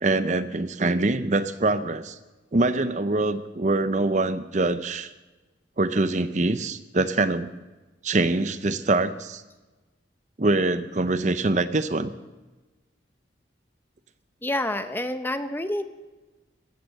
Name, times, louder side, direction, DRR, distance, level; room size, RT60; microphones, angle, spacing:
voice 1, 0.0-2.2 2.5-5.1 5.8-7.5 8.0-9.4 10.4-12.1, right 2 dB, 40° right, 12 dB, 0.6 m, -24 dB
voice 2, 14.4-15.8, left 1 dB, 10° left, 9 dB, 0.8 m, -28 dB
16.0 x 13.5 x 6.6 m, 1.2 s
head